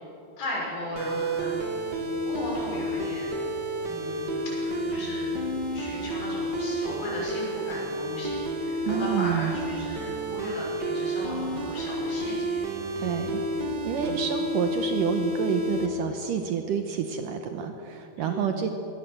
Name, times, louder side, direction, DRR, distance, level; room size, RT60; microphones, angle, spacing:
voice 1, 0.4-1.6 2.2-3.4 3.9-5.3 5.7-12.7 14.0-14.2 18.2-18.5, left 1 dB, 65° left, -4 dB, 7.7 m, -36 dB
sound 1, 1.0-15.9, right 1 dB, 40° right, 1.7 m, -30 dB
voice 2, 8.8-9.5 13.0-18.7, right 8 dB, 70° right, 6 dB, 2.2 m, -29 dB
22.0 x 17.5 x 7.7 m, 3.0 s
omnidirectional pair, 4.6 m